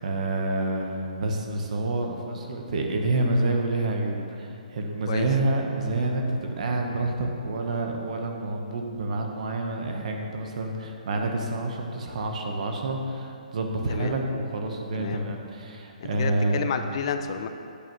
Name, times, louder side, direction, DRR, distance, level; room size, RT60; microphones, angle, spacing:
voice 1, 0.0-16.8, right 2 dB, 55° right, 2 dB, 1.2 m, -28 dB
voice 2, 16.0-17.5, left 7 dB, 40° left, 7 dB, 0.5 m, -31 dB
9.7 x 8.3 x 3.1 m, 2.6 s
hypercardioid pair, 160°, 4 cm